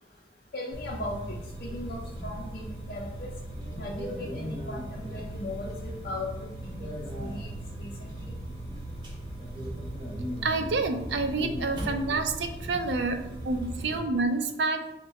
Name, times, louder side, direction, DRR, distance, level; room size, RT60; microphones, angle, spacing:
voice 1, 0.5-3.3 3.8-8.3, left 2 dB, 55° left, -3 dB, 0.5 m, -38 dB
sound 1, 0.7-14.0, right 1 dB, 25° right, 0.9 m, -37 dB
voice 2, 10.4-14.9, right 3 dB, 80° right, 7 dB, 0.5 m, -28 dB
4.5 x 2.2 x 4.0 m, 0.90 s
head